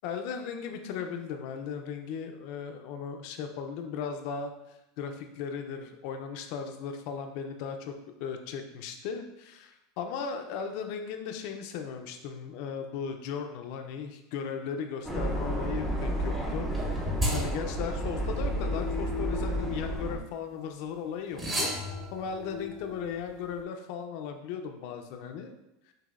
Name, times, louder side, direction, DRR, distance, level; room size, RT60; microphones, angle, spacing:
voice 1, 0.0-4.5 5.0-25.5, left 6 dB, 60° left, 5 dB, 0.5 m, -37 dB
sound 1, 15.0-20.2, right 1 dB, 5° right, 0.7 m, -31 dB
sound 2, 16.7-20.5 21.3-23.6, left 1 dB, 20° right, 1.0 m, -35 dB
5.8 x 2.7 x 2.5 m, 0.89 s
supercardioid pair, 140°, 0 cm